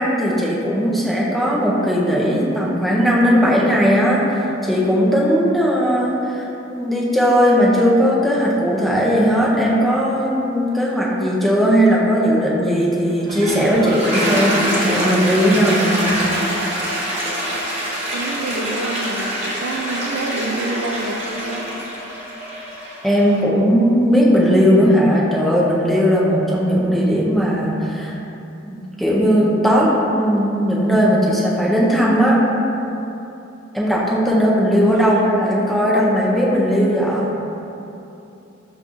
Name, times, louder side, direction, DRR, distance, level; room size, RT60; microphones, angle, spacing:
voice 1, 0.0-16.3 23.0-28.1 28.6-32.4 33.7-37.3, equal, ahead, -5 dB, 0.5 m, -17 dB
Toilet flush, 13.1-23.4, equal, 35° right, 1.0 m, -25 dB
voice 2, 18.1-21.6 35.1-35.3, right 2 dB, 70° right, 2 dB, 0.4 m, -27 dB
7.0 x 2.4 x 2.6 m, 2.9 s
head